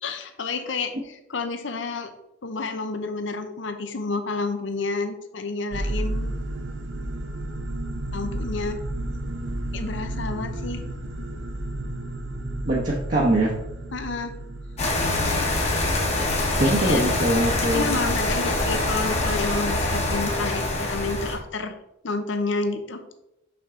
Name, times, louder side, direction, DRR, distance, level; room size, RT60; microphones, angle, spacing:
voice 1, 0.0-2.1 2.4-6.4 8.1-8.8 9.7-10.8 13.9-14.3 16.6-17.0 17.7-21.7 22.0-23.0, left 3 dB, 70° left, 7 dB, 0.8 m, -30 dB
sound 1, 5.7-16.2, right 1 dB, 75° right, 0.9 m, -32 dB
voice 2, 12.6-13.5 16.6-18.0, right 1 dB, 40° right, -4 dB, 1.0 m, -22 dB
sound 2, 14.8-21.4, left 2 dB, 35° left, 1.2 m, -24 dB
6.2 x 5.9 x 3.7 m, 0.87 s
head